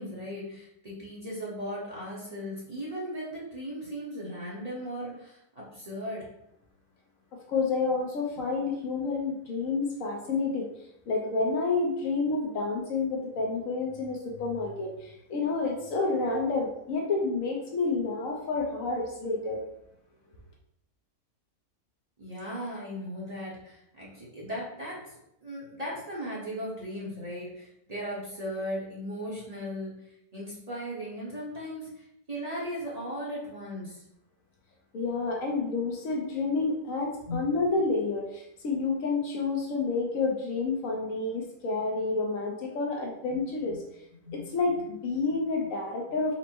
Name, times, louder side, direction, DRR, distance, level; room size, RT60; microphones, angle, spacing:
voice 1, 0.0-6.2 8.3-8.4 22.2-29.9 30.3-34.0 37.3-37.4 43.7-43.8 44.2-44.6 45.1-45.4, equal, 30° right, -7 dB, 1.0 m, -37 dB
voice 2, 7.5-10.7 11.1-19.6 34.9-43.8 44.3-46.4, left 3 dB, 65° left, 0 dB, 1.1 m, -29 dB
4.2 x 2.1 x 4.4 m, 0.79 s
omnidirectional pair, 1.6 m